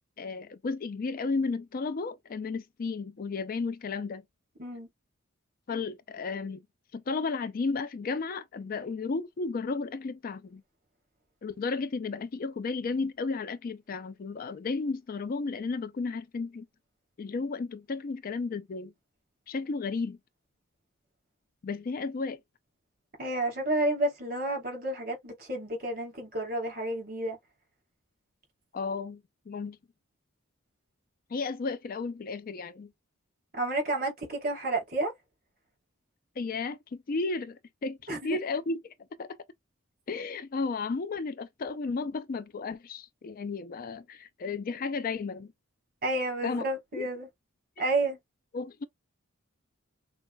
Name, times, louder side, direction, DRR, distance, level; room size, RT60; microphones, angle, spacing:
voice 1, 0.2-4.2 5.7-6.6 6.9-10.6 11.4-16.7 17.2-18.9 19.5-20.2 21.6-22.4 28.7-29.8 31.3-32.9 36.4-38.0 38.2-39.4 40.1-45.5 46.4-46.6 46.9-47.1 47.8-47.9 48.5-48.8, left 4 dB, 45° left, 0.4 m, -33 dB
voice 2, 23.2-27.4 33.5-35.1 38.1-38.4 46.0-47.3 47.8-48.2, right 2 dB, 45° right, 3.1 m, -30 dB
6.0 x 2.4 x 2.2 m
head